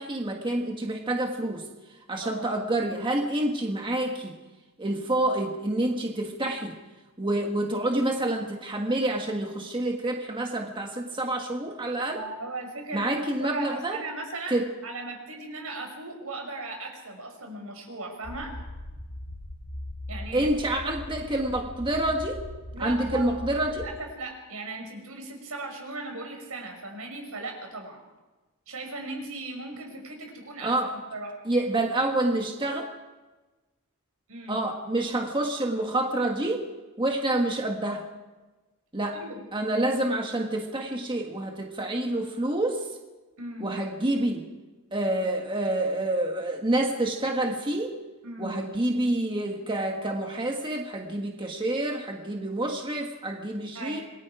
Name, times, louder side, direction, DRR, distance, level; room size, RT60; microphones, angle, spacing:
voice 1, 0.0-1.7 2.1-4.4 4.8-6.8 7.2-12.2 12.9-14.0 14.5-14.7 20.3-22.4 22.8-23.9 30.6-30.9 31.4-32.9 34.5-36.7 37.0-38.1 38.9-39.2 39.5-42.9 43.6-44.5 44.9-48.0 48.4-54.0, right 1 dB, 25° right, 2 dB, 1.5 m, -28 dB
voice 2, 12.1-18.6 20.1-20.5 22.7-23.3 23.7-28.0 28.7-31.4 34.3-34.6 39.1-39.4 43.4-43.7 48.2-48.5 53.7-54.0, right 2 dB, 75° right, 3 dB, 5.7 m, -37 dB
sound 1, 18.2-23.9, left 1 dB, 75° left, 3.9 m, -39 dB
27.0 x 21.5 x 4.9 m, 1.2 s
head